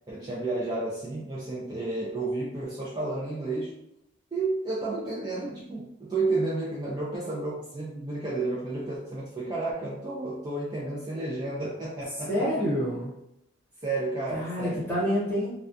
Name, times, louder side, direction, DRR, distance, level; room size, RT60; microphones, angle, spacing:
voice 1, 0.1-3.7 4.3-12.5 13.8-14.8, right 2 dB, 20° right, -7 dB, 0.4 m, -31 dB
voice 2, 12.3-13.1 14.3-15.5, equal, 10° left, -7 dB, 1.0 m, -27 dB
2.2 x 2.2 x 2.5 m, 0.84 s
head